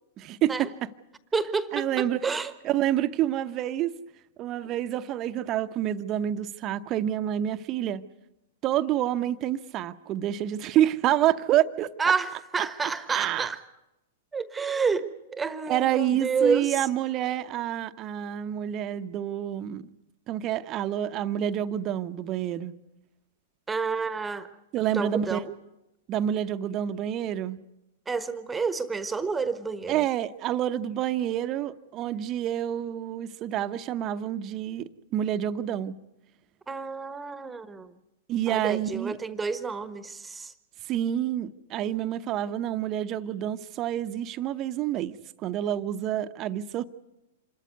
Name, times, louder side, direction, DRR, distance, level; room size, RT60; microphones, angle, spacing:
voice 1, 0.2-0.9 1.7-2.2 2.6-3.9 4.4-8.0 8.6-11.9 13.1-13.5 15.7-19.9 20.3-22.7 24.7-25.4 26.1-27.6 29.9-36.0 38.3-39.2 40.8-46.8, right 11 dB, 35° right, 11 dB, 0.9 m, -28 dB
voice 2, 1.3-2.5 12.0-13.6 14.3-16.9 23.7-24.5 24.9-25.5 28.1-30.1 36.7-37.9 38.5-40.5, right 5 dB, 10° right, 13 dB, 1.3 m, -29 dB
26.5 x 13.5 x 9.5 m, 0.94 s
hypercardioid pair, 110°, 0 cm